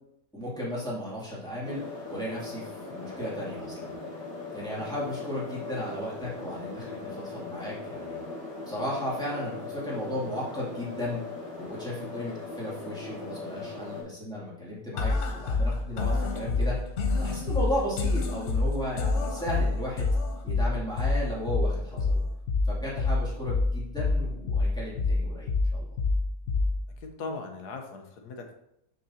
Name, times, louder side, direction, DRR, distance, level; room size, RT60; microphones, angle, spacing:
voice 1, 0.3-3.9 4.5-8.2 8.7-11.2 11.6-16.8 17.2-20.1 20.4-22.2 22.7-26.0, equal, 5° left, -8 dB, 2.5 m, -35 dB
sound 1, 1.6-14.0, left 3 dB, 45° right, 3.0 m, -39 dB
voice 2, 4.7-5.1 27.0-28.5, left 3 dB, 90° left, 4 dB, 1.5 m, -39 dB
sound 2, 15.0-27.0, left 3 dB, 55° left, 1.0 m, -28 dB
6.6 x 6.4 x 2.8 m, 0.79 s
omnidirectional pair, 1.7 m